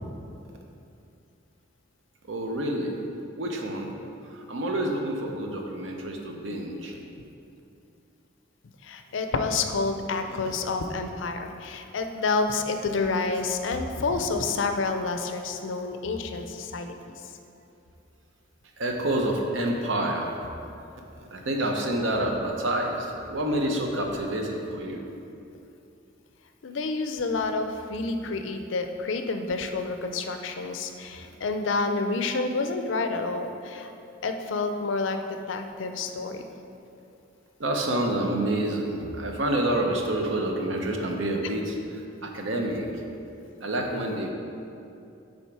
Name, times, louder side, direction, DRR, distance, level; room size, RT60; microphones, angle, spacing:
voice 1, 2.2-2.9 3.4-3.9 4.2-7.0 10.3-10.6 16.3-16.4 18.8-20.4 21.1-25.0 31.2-31.3 37.6-42.9 43.6-44.3, right 1 dB, 75° right, 2 dB, 0.7 m, -28 dB
voice 2, 8.8-17.1 26.6-33.9 34.2-36.4, left 3 dB, 75° left, 6 dB, 0.5 m, -29 dB
7.1 x 3.9 x 4.7 m, 2.7 s
head